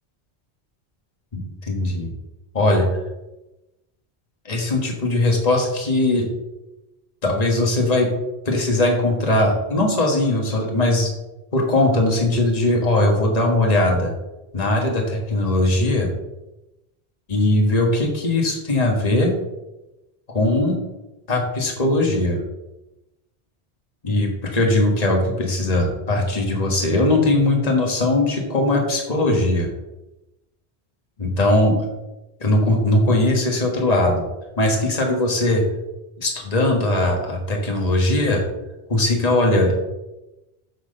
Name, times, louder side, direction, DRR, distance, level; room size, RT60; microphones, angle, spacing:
voice 1, 1.3-2.1 2.5-2.9 4.5-6.3 7.2-8.1 8.5-11.1 11.5-14.1 14.5-16.1 17.3-19.3 20.3-20.8 21.3-22.4 24.0-29.7 31.2-31.9 32.4-34.3 34.6-35.6 36.2-38.4 38.9-39.8, left 2 dB, 35° left, 1 dB, 1.6 m, -20 dB
8.0 x 4.7 x 6.6 m, 0.99 s
omnidirectional pair, 1.1 m